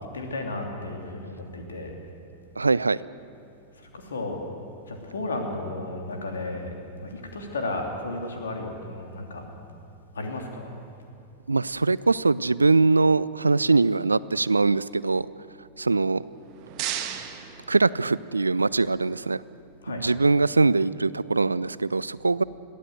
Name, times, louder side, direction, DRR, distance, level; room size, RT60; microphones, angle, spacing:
voice 1, 0.1-1.9 3.8-4.4 4.9-6.7 7.0-9.4 10.1-10.7 19.8-20.0, left 2 dB, 70° left, 3 dB, 2.9 m, -33 dB
voice 2, 2.6-3.0 11.5-15.3 15.8-16.2 17.7-19.4 19.9-22.4, right 3 dB, 80° right, 19 dB, 0.4 m, -22 dB
sound 1, 16.2-18.5, right 10 dB, 40° right, 1.5 m, -35 dB
22.0 x 15.0 x 7.8 m, 2.6 s
figure-of-eight pair, 90°, 0 cm